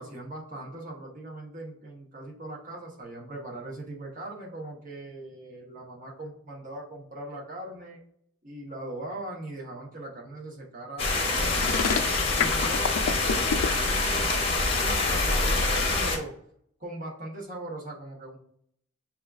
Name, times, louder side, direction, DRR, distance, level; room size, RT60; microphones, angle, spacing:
voice 1, 0.0-8.0 8.4-12.0 12.4-16.3 16.8-18.4, right 2 dB, 35° right, -3 dB, 0.9 m, -40 dB
sound 1, 11.0-16.2, left 3 dB, 25° left, 0.6 m, -25 dB
sound 2, 11.6-13.7, left 6 dB, 90° left, 0.4 m, -27 dB
7.0 x 2.4 x 2.3 m, 0.68 s
head